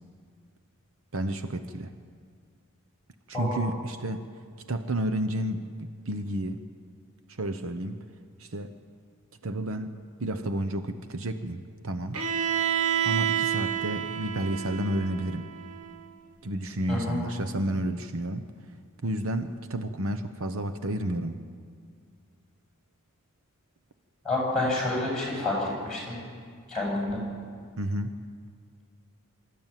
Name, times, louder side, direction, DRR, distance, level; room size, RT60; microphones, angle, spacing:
voice 1, 1.1-1.9 3.3-4.2 4.7-6.6 7.4-8.0 8.4-8.7 9.4-12.2 13.0-15.5 16.4-18.5 19.0-21.4 27.8-28.1, right 1 dB, 65° right, 9 dB, 0.9 m, -31 dB
voice 2, 3.3-3.7 16.9-17.2 24.2-26.2 26.7-27.2, left 2 dB, 5° left, -4 dB, 7.5 m, -28 dB
Bowed string instrument, 12.1-16.0, right 9 dB, 85° right, 1.3 m, -29 dB
24.5 x 14.0 x 9.1 m, 2.1 s
head